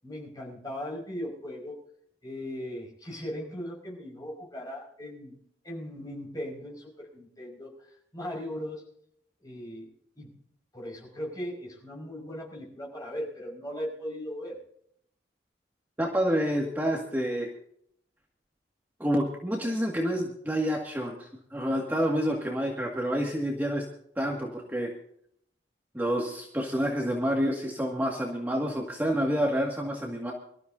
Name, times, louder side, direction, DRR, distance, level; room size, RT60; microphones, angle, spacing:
voice 1, 0.0-1.8 2.2-5.4 5.6-8.9 9.4-9.9 10.2-10.3 10.7-14.6, equal, 20° left, -1 dB, 5.3 m, -38 dB
voice 2, 16.0-17.5 19.0-23.8 24.2-24.9 25.9-30.3, equal, 10° right, -1 dB, 2.0 m, -28 dB
25.0 x 13.5 x 2.7 m, 0.68 s
head